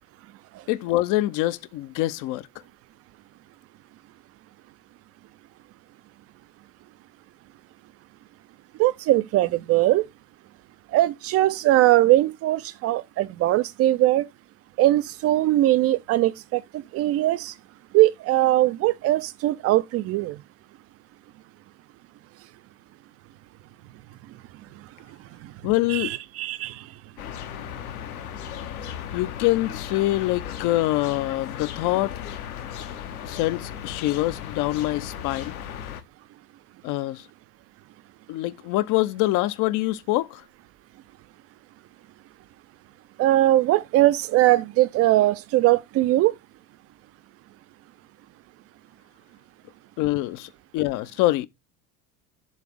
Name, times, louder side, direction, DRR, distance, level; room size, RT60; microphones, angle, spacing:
voice 1, 0.7-2.5 25.6-26.1 29.1-32.1 33.2-35.5 36.8-37.3 38.3-40.4 50.0-51.5, left 17 dB, 45° left, 0.7 m, -25 dB
voice 2, 8.8-10.1 10.9-14.3 14.8-17.5 17.9-20.4 25.9-26.8 43.2-46.3, right 15 dB, 35° right, 0.5 m, -20 dB
sound 1, 27.2-36.0, left 9 dB, 70° left, 1.1 m, -36 dB
7.3 x 3.3 x 6.1 m
figure-of-eight pair, 70°, 46 cm